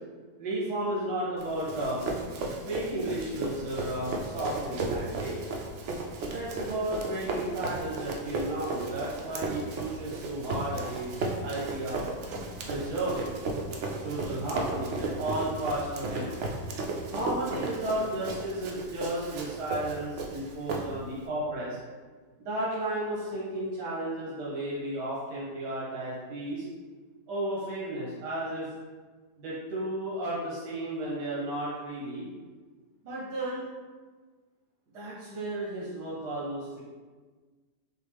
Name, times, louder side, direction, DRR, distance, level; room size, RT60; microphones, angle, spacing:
voice 1, 0.4-2.0 2.6-5.4 6.3-12.0 12.6-13.3 14.0-16.4 17.1-21.8 22.4-26.7 27.3-28.7 29.4-32.3 33.0-33.7 34.9-36.8, right 1 dB, 90° right, -7 dB, 1.6 m, -33 dB
Run, 1.4-21.2, right 2 dB, 65° right, 0.7 m, -35 dB
6.2 x 2.5 x 3.4 m, 1.4 s
omnidirectional pair, 1.7 m